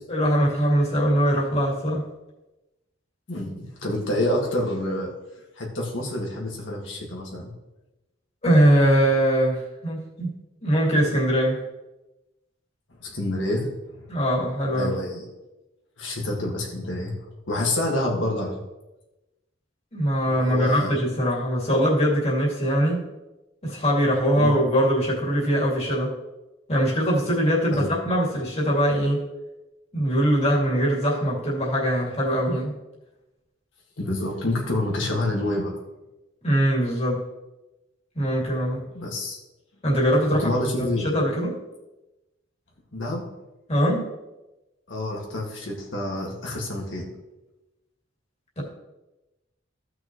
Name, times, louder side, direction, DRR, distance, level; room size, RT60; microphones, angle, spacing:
voice 1, 0.1-2.1 8.4-10.3 10.6-11.6 14.1-14.9 19.9-23.0 23.6-26.1 26.7-29.2 29.9-32.7 36.4-37.2 38.1-38.8 39.8-40.5 41.0-41.5 43.7-44.1 48.6-48.7, equal, 35° left, -5 dB, 2.7 m, -22 dB
voice 2, 3.3-5.1 5.6-7.5 13.0-13.7 14.7-15.3 16.0-17.1 17.5-18.5 20.3-21.0 24.4-24.6 27.7-27.9 34.0-35.8 38.9-39.4 40.4-41.1 42.9-43.3 44.9-47.1, left 1 dB, 70° left, -1 dB, 2.1 m, -27 dB
15.5 x 6.1 x 3.2 m, 1.0 s
head